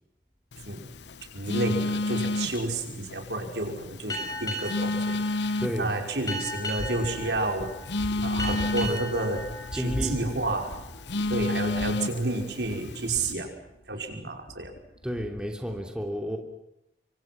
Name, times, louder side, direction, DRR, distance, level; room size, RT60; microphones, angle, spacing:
Telephone, 0.5-13.3, left 2 dB, 85° left, 0.9 m, -32 dB
voice 1, 1.3-7.7 8.2-9.4 9.7-10.7 11.3-13.5 13.9-14.7, right 2 dB, 80° right, 3 dB, 5.5 m, -30 dB
Boat Water vehicle, 4.1-11.2, equal, 20° left, 6.5 m, -37 dB
voice 2, 5.6-5.9 9.7-10.2 15.0-16.4, equal, 5° right, 2 dB, 3.1 m, -31 dB
sound 1, 6.8-15.8, equal, 60° left, 3.5 m, -40 dB
27.0 x 25.0 x 6.1 m, 0.85 s
head